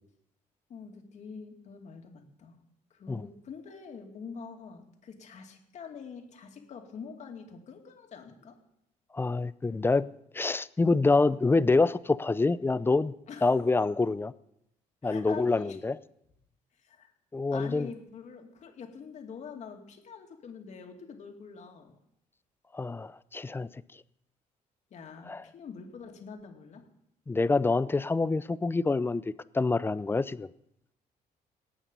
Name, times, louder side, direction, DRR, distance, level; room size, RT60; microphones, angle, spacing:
voice 1, 0.7-2.6 2.9-8.6 13.3-13.6 15.0-15.8 16.8-17.1 17.5-22.0 24.9-26.9, left 5 dB, 55° left, 2.3 m, -45 dB
voice 2, 9.1-10.1 10.3-13.1 13.4-14.3 15.0-16.0 17.3-17.9 22.7-23.7 25.3-25.4 27.3-29.2 29.5-30.5, left 3 dB, 15° left, 0.4 m, -26 dB
19.0 x 8.8 x 5.4 m
cardioid pair, 110°, 15 cm